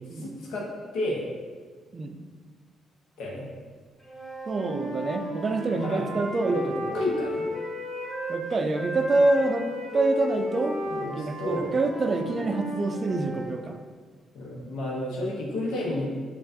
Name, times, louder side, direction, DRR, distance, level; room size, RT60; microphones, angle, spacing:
voice 1, 0.1-0.7 0.9-1.3 3.2-3.5 5.7-6.1 6.5-6.7 6.9-7.4 10.3-10.5 10.8-11.7 12.2-12.3 14.3-16.1, left 2 dB, 85° left, -3 dB, 0.9 m, -31 dB
Wind instrument woodwind instrument, 4.0-8.4 8.7-13.6, equal, 10° left, 1.0 m, -34 dB
voice 2, 4.5-6.6 8.3-9.7 9.9-10.8 11.2-13.8, right 2 dB, 40° right, 6 dB, 0.3 m, -26 dB
5.4 x 2.4 x 2.6 m, 1.5 s
cardioid pair, 90°, 0 cm